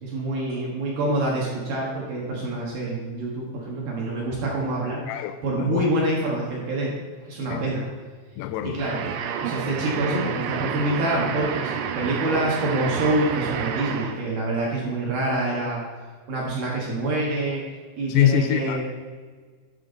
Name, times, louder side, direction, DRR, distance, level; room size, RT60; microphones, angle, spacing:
voice 1, 0.0-5.0 5.4-6.9 7.2-7.9 8.6-9.0 9.4-15.8 16.3-17.6 18.0-18.8, right 2 dB, 60° right, 2.6 m, -26 dB
voice 2, 5.1-5.9 7.5-7.7 8.4-8.8 18.1-18.8, left 13 dB, 85° left, 3.2 m, -24 dB
sound 1, 8.8-14.3, right 7 dB, 85° right, 2.5 m, -30 dB
11.5 x 6.2 x 4.0 m
omnidirectional pair, 5.9 m